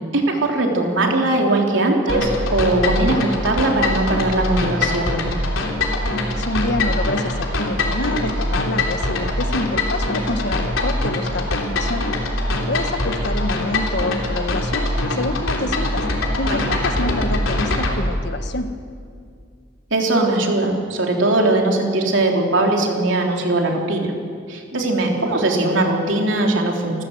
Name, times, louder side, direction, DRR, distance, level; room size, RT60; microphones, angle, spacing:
voice 1, 0.0-5.3 16.5-16.6 19.9-24.1 24.5-27.0, right 2 dB, 65° right, 1 dB, 3.5 m, -20 dB
sound 1, 2.1-18.0, left 1 dB, 80° left, 3.4 m, -23 dB
voice 2, 6.4-12.1 12.7-16.0 16.4-18.7, left 2 dB, 55° left, 8 dB, 1.4 m, -27 dB
27.5 x 15.0 x 7.9 m, 2.3 s
head